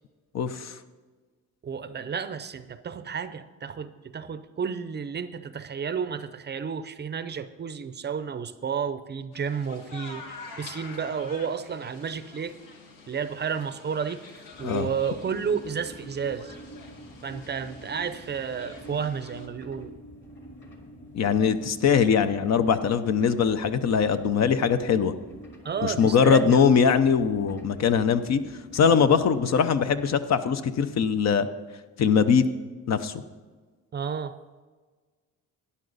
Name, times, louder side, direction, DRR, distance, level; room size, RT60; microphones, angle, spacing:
voice 1, 0.3-0.8 14.6-14.9 21.1-25.1 25.8-28.4 28.7-31.5 32.0-32.4 32.9-33.1, left 6 dB, 55° left, 11 dB, 0.7 m, -21 dB
voice 2, 1.6-12.6 13.1-16.6 17.2-19.9 25.6-26.7 33.9-34.4, right 6 dB, 30° right, 12 dB, 0.5 m, -32 dB
sound 1, 9.3-19.5, left 4 dB, 75° left, 1.6 m, -47 dB
sound 2, 14.5-30.1, right 1 dB, 35° left, 2.3 m, -46 dB
12.5 x 9.9 x 4.0 m, 1.4 s
cardioid pair, 110°, 33 cm